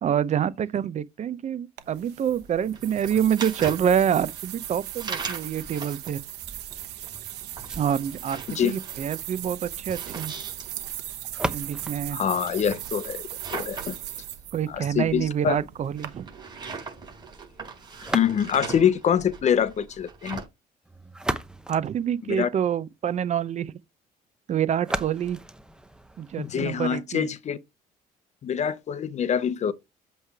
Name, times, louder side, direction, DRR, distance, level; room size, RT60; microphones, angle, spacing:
voice 1, 0.0-6.2 7.8-10.3 11.5-12.2 14.5-16.3 21.7-23.7 24.5-25.4 26.2-27.3, right 9 dB, 45° right, 0.6 m, -26 dB
sound 1, 1.8-16.1, right 13 dB, 80° right, 1.0 m, -38 dB
sound 2, 2.4-20.5, right 4 dB, 25° right, 4.4 m, -41 dB
sound 3, 7.6-13.6 18.0-18.8 20.8-22.8 24.8-26.8, right 1 dB, 5° right, 0.7 m, -37 dB
voice 2, 12.1-13.2 13.5-14.0 14.7-15.6 18.1-20.4 22.3-22.5 26.4-27.6 28.4-29.7, left 8 dB, 45° left, 0.7 m, -25 dB
7.9 x 3.3 x 4.6 m
cardioid pair, 110°, 17 cm